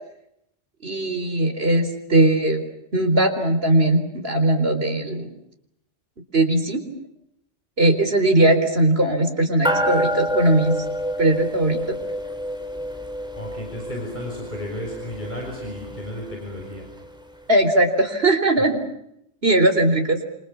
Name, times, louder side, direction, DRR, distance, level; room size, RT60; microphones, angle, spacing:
voice 1, 0.8-2.6 2.9-5.3 6.3-6.8 7.8-10.8 11.2-11.8 17.5-18.8 19.4-20.2, right 1 dB, 55° right, 6 dB, 4.4 m, -19 dB
sound 1, 9.6-17.3, equal, 5° right, 4.4 m, -28 dB
voice 2, 13.4-16.9, left 1 dB, 40° left, 1 dB, 6.4 m, -33 dB
28.0 x 27.5 x 7.2 m, 0.78 s
omnidirectional pair, 1.2 m